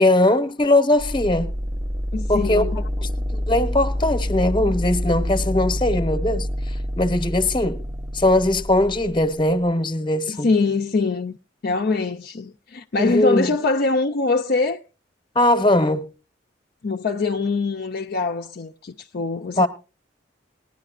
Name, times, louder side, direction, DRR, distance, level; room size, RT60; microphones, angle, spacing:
voice 1, 0.0-1.5 2.3-2.6 3.0-6.5 7.0-7.8 8.1-10.5 13.0-13.5 15.3-16.1 19.6-19.7, left 1 dB, 25° left, 0.9 m, -20 dB
sound 1, 1.0-9.7, equal, 25° right, 0.6 m, -27 dB
voice 2, 2.1-2.8 10.3-11.4 11.6-14.8 16.8-19.7, left 3 dB, 55° left, 0.5 m, -23 dB
19.5 x 10.5 x 2.4 m
head